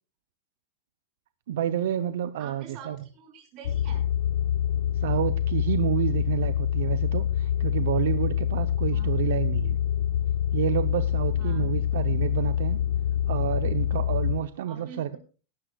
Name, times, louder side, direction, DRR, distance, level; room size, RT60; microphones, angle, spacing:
voice 1, 1.5-3.0 4.9-9.8 10.5-12.8 13.3-15.2, right 11 dB, 70° right, 10 dB, 0.7 m, -29 dB
voice 2, 2.4-4.0 8.9-9.1 11.4-11.7 14.7-15.2, right 6 dB, 35° right, 3 dB, 5.5 m, -45 dB
sound 1, 3.6-14.4, left 10 dB, 80° left, 1.1 m, -26 dB
18.5 x 12.5 x 2.3 m, 0.35 s
supercardioid pair, 170°, 0 cm